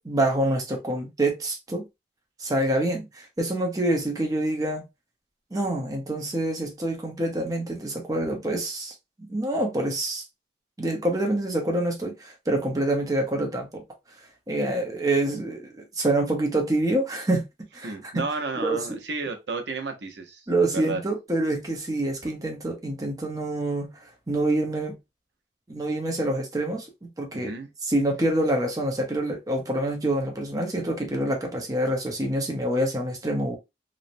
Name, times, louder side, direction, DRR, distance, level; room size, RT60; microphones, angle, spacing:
voice 1, 0.0-1.9 2.4-4.9 5.5-8.9 9.3-10.2 10.8-13.8 14.5-17.4 17.7-18.2 18.6-19.0 20.5-23.9 24.3-25.0 25.7-27.5 27.8-33.6, right 1 dB, 20° right, 0.7 m, -26 dB
voice 2, 17.8-21.0 27.3-27.7, right 3 dB, 75° right, 0.7 m, -32 dB
3.0 x 2.0 x 2.5 m
head